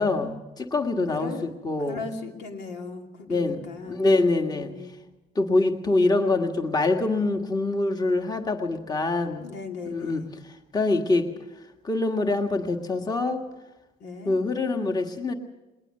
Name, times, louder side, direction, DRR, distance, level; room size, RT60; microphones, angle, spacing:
voice 1, 0.0-2.1 3.3-3.6 3.9-4.7 5.3-9.5 9.9-10.2 10.7-11.3 11.8-13.4 14.2-15.3, left 2 dB, 25° left, 5 dB, 1.6 m, -24 dB
voice 2, 1.1-1.5 1.9-4.9 9.4-10.2 14.0-14.4, left 4 dB, 90° left, 3 dB, 2.7 m, -38 dB
20.5 x 19.5 x 6.6 m, 1.0 s
cardioid pair, 110°, 17 cm